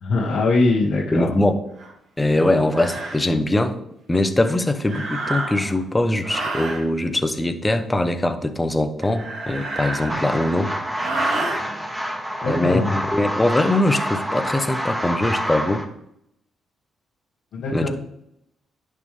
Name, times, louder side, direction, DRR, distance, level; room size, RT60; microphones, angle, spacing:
voice 1, 0.0-1.3 12.4-12.9 17.5-17.9, left 3 dB, 70° left, -5 dB, 1.6 m, -21 dB
voice 2, 1.1-1.6 2.2-3.8 4.1-10.7 12.4-15.8 17.7-17.9, left 1 dB, 15° left, 8 dB, 0.9 m, -22 dB
sound 1, 1.8-1.9 2.7-3.2 4.8-5.8 6.2-6.8 9.0-10.5 10.9-11.6, right 2 dB, 70° right, 3.4 m, -29 dB
sound 2, 10.1-15.8, equal, 15° right, 2.1 m, -28 dB
10.5 x 6.7 x 3.4 m, 0.76 s
cardioid pair, 90°, 0 cm